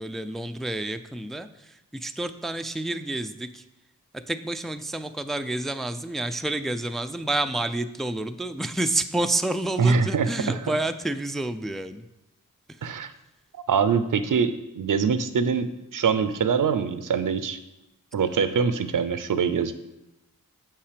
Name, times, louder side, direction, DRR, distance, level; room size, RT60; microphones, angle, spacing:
voice 1, 0.0-3.6 4.1-12.1 12.7-12.9, right 2 dB, ahead, 9 dB, 0.4 m, -29 dB
voice 2, 9.8-10.6 12.8-13.1 13.5-17.6 18.1-19.7, right 5 dB, 70° right, 11 dB, 0.6 m, -24 dB
7.3 x 5.6 x 5.0 m, 0.93 s
cardioid pair, 60°, 33 cm